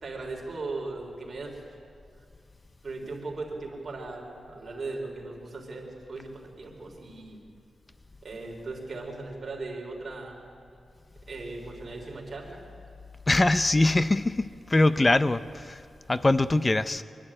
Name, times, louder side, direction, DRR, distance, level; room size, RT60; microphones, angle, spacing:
voice 1, 0.0-1.6 2.8-7.4 8.2-10.5 11.3-12.6, right 3 dB, 40° right, 4.0 m, -38 dB
voice 2, 13.3-15.8 16.1-17.0, left 2 dB, 20° left, 0.5 m, -23 dB
24.5 x 12.0 x 8.8 m
wide cardioid pair, 145°, 0 cm